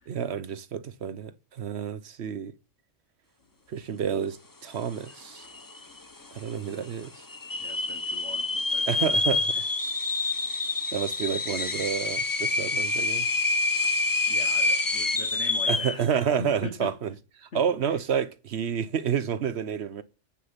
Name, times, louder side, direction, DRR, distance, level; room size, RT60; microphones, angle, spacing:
voice 1, 0.1-2.5 3.7-4.4 4.6-5.5 6.3-7.1 8.9-9.6 10.9-13.3 15.7-20.0, right 8 dB, 65° right, 1.0 m, -29 dB
sound 1, 5.1-5.2 5.4-6.0 6.5-6.6 7.3-16.0, left 3 dB, 20° left, 0.8 m, -27 dB
voice 2, 7.6-9.0 10.3-10.5 14.3-16.9, left 3 dB, 70° left, 1.8 m, -41 dB
16.5 x 6.6 x 5.8 m
omnidirectional pair, 1.2 m